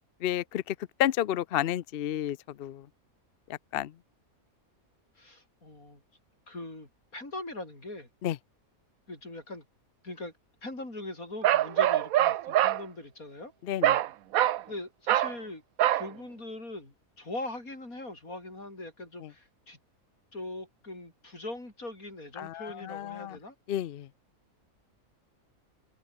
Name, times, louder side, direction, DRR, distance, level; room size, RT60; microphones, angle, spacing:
voice 1, 0.2-2.9 3.5-3.9 8.2-8.4 13.7-14.0 22.4-23.4 23.7-24.1, left 12 dB, 60° left, 0.6 m, -31 dB
voice 2, 5.2-6.0 6.5-8.1 9.1-9.7 10.0-10.3 10.6-13.5 14.7-15.6 15.9-19.8 20.3-23.6, left 2 dB, 75° left, 7.4 m, -41 dB
Bark, 11.4-12.8 13.8-14.1 14.3-14.6 15.1-15.4 15.8-16.1, right 13 dB, 80° right, 1.1 m, -24 dB
open air
omnidirectional pair, 1.5 m